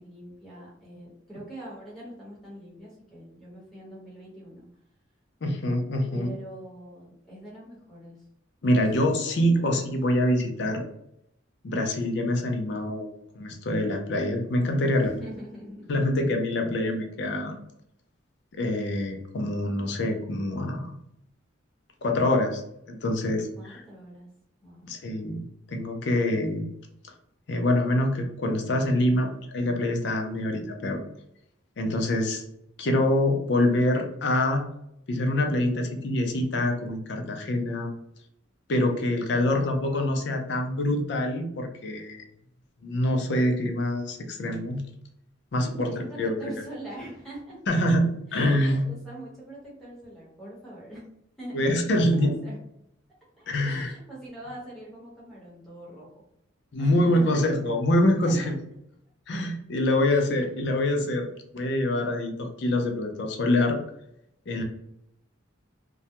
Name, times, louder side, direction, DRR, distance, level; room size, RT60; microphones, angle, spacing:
voice 1, 0.0-4.7 6.1-8.2 8.7-8.8 9.3-9.8 14.9-15.9 23.6-24.3 24.6-24.9 39.2-39.9 45.5-47.6 48.3-51.1 51.4-52.6 53.4-56.1 56.8-57.4 58.2-58.5 60.1-60.3, right 1 dB, ahead, -7 dB, 0.9 m, -43 dB
voice 2, 5.4-6.3 8.6-10.8 11.6-13.1 13.3-15.1 15.9-17.5 18.5-20.9 22.0-23.8 24.9-26.7 27.5-31.0 31.8-32.4 32.8-34.6 35.1-37.9 38.7-42.2 42.8-44.8 45.5-45.9 46.2-46.3 47.7-48.9 51.5-52.3 53.5-53.9 56.7-58.5 59.3-61.3 61.5-63.8 64.5-64.6, left 1 dB, 55° left, 3 dB, 0.4 m, -25 dB
2.2 x 2.1 x 2.8 m, 0.77 s
head